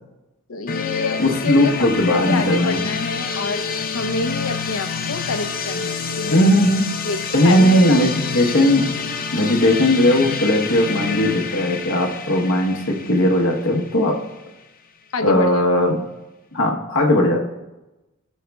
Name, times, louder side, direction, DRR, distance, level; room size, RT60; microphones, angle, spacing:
voice 1, 0.5-3.6 3.9-6.5 7.0-7.2 7.4-8.1 15.1-15.6, left 3 dB, 85° left, 7 dB, 0.7 m, -27 dB
sound 1, 0.7-14.4, left 6 dB, 45° left, 0.6 m, -28 dB
voice 2, 1.2-2.8 6.3-6.8 7.3-8.9 9.3-14.2 15.2-16.0 16.5-17.4, left 1 dB, 65° left, 0 dB, 1.1 m, -17 dB
17.5 x 6.4 x 2.3 m, 1.0 s
head